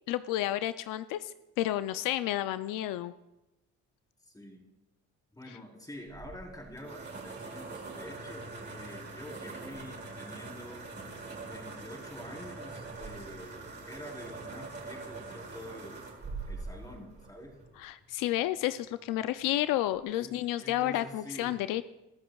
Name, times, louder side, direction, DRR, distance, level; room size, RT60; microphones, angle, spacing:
voice 1, 0.1-3.1 17.8-21.8, left 14 dB, 85° left, 13 dB, 0.5 m, -31 dB
voice 2, 4.2-4.7 5.3-10.9 11.4-16.0 16.5-17.6 20.1-21.6, equal, 10° left, -1 dB, 4.1 m, -47 dB
sound 1, 6.1-17.9, right 3 dB, 35° right, 4.6 m, -43 dB
22.0 x 13.0 x 2.3 m, 0.97 s
cardioid pair, 85°, 32 cm